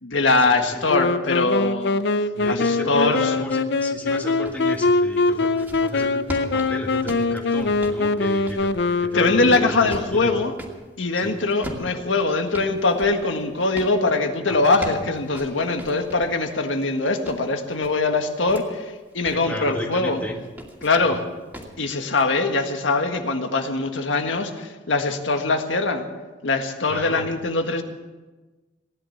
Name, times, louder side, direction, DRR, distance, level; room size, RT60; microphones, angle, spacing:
voice 1, 0.0-2.0 2.5-3.3 9.1-10.5 11.0-20.2 20.8-21.2 21.8-26.1 26.4-27.8, left 3 dB, 85° left, 5 dB, 1.7 m, -22 dB
Wind instrument woodwind instrument, 0.9-9.9, left 3 dB, 60° left, 0.6 m, -23 dB
voice 2, 2.3-8.7 9.0-10.4 11.1-11.3 14.1-14.6 15.5-15.6 19.3-20.4 21.0-21.2 26.9-27.2, left 1 dB, 10° left, 0 dB, 1.7 m, -34 dB
sound 1, 4.4-4.7 5.2-10.8 11.5-14.0 14.5-16.4 16.8-18.6 19.1-19.5 20.4-21.1 21.5-21.8, equal, 10° right, 2.5 m, -39 dB
17.5 x 11.0 x 7.2 m, 1.2 s
head